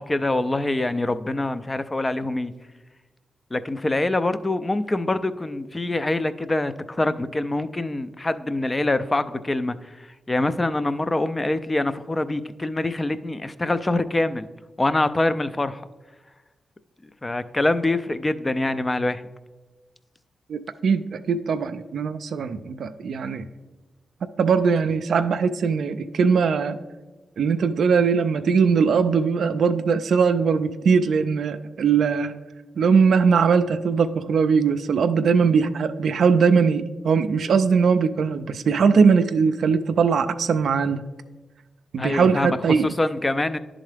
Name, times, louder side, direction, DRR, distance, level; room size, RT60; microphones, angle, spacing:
voice 1, 0.0-2.5 3.5-14.5 14.8-15.8 17.2-19.2 42.0-42.5 42.8-43.6, left 2 dB, 25° left, 12 dB, 0.4 m, -25 dB
voice 2, 20.5-23.5 24.4-26.8 27.4-32.3 32.8-41.0 41.9-42.9, right 5 dB, 75° right, 10 dB, 0.3 m, -20 dB
10.5 x 3.7 x 3.3 m, 1.2 s
cardioid pair, 50°, 0 cm